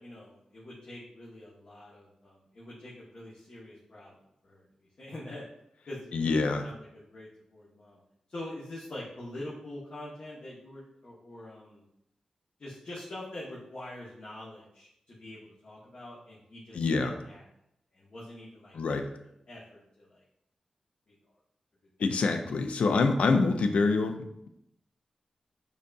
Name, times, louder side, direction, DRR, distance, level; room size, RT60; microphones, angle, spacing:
voice 1, 0.0-4.1 4.4-4.6 5.0-5.4 5.9-8.0 8.3-11.8 12.6-17.4 17.9-19.0 19.5-20.2 21.1-21.2, left 1 dB, 60° left, -7 dB, 0.9 m, -45 dB
voice 2, 6.1-6.7 16.7-17.2 18.7-19.1 22.0-24.5, left 3 dB, 80° left, 7 dB, 0.3 m, -26 dB
5.1 x 2.7 x 2.3 m, 0.79 s
cardioid pair, 40°, 2 cm